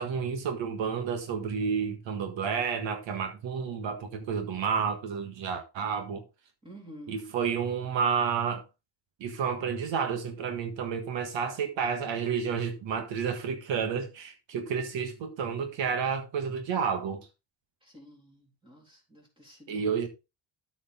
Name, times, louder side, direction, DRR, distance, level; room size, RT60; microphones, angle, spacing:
voice 1, 0.0-6.2 7.1-8.6 9.2-17.3 19.7-20.1, right 6 dB, 75° right, 1.6 m, -30 dB
voice 2, 6.6-7.2 17.8-20.0, equal, 10° right, 3.6 m, -50 dB
13.0 x 5.2 x 3.6 m
cardioid pair, 180°, 45 cm